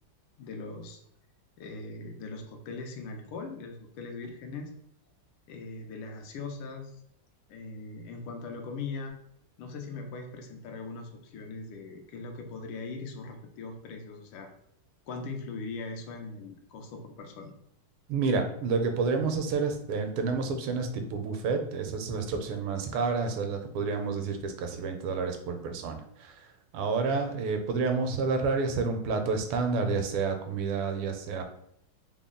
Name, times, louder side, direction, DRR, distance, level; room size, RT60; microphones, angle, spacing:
voice 1, 0.4-1.0 1.6-4.7 5.5-7.0 7.5-9.2 9.6-14.5 15.1-17.5, left 3 dB, 90° left, 3 dB, 1.5 m, -40 dB
voice 2, 18.1-26.3 26.7-31.4, right 4 dB, 80° right, 5 dB, 1.4 m, -29 dB
3.9 x 2.1 x 3.6 m, 0.71 s
omnidirectional pair, 2.4 m